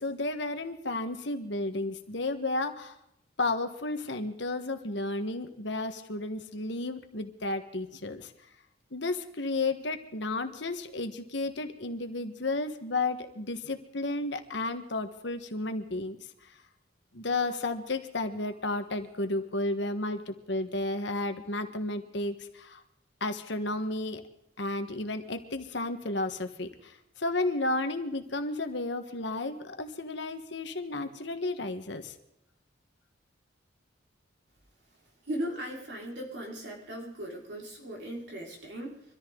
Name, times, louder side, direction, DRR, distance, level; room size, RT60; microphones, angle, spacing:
voice 1, 0.0-3.0 3.4-8.3 8.9-16.5 17.1-22.8 23.2-24.2 24.6-32.1, left 2 dB, 65° left, 7 dB, 1.4 m, -32 dB
voice 2, 35.3-39.0, right 1 dB, 60° right, -2 dB, 4.9 m, -38 dB
24.0 x 14.0 x 3.9 m, 0.79 s
head